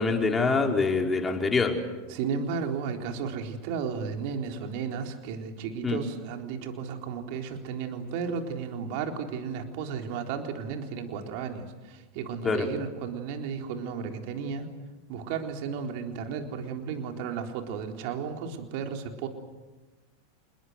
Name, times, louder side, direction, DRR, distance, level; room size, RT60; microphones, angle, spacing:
voice 1, 0.0-1.8 5.8-6.0 12.4-12.7, left 4 dB, 15° left, 2 dB, 4.6 m, -25 dB
voice 2, 2.1-14.7 15.1-19.3, right 6 dB, 60° right, 4 dB, 3.9 m, -34 dB
27.5 x 22.0 x 8.1 m, 1.2 s
hypercardioid pair, 100°, 0 cm